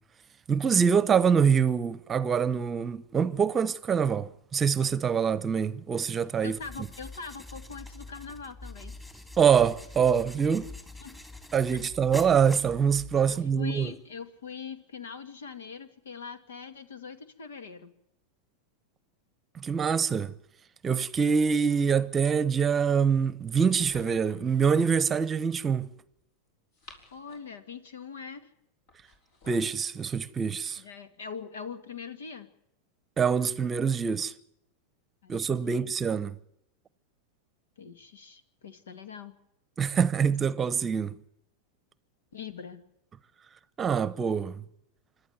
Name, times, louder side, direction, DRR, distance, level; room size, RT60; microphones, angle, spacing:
voice 1, 0.5-6.6 9.4-10.7 11.5-13.9 19.5-20.3 20.8-25.9 29.5-30.8 33.2-34.3 35.3-36.3 39.8-41.2 43.8-44.6, right 6 dB, 20° right, 0.9 m, -25 dB
voice 2, 6.4-9.0 11.0-11.2 13.2-17.9 27.1-28.5 30.8-32.5 35.2-35.3 35.6-35.8 37.8-39.3 42.3-42.8, left 6 dB, 85° left, 2.1 m, -42 dB
sound 1, 6.4-13.4, left 2 dB, 10° left, 2.9 m, -45 dB
sound 2, 23.5-24.5 26.5-27.6 28.9-29.8, left 2 dB, 60° left, 6.2 m, -53 dB
26.5 x 12.0 x 9.4 m
hypercardioid pair, 120°, 0 cm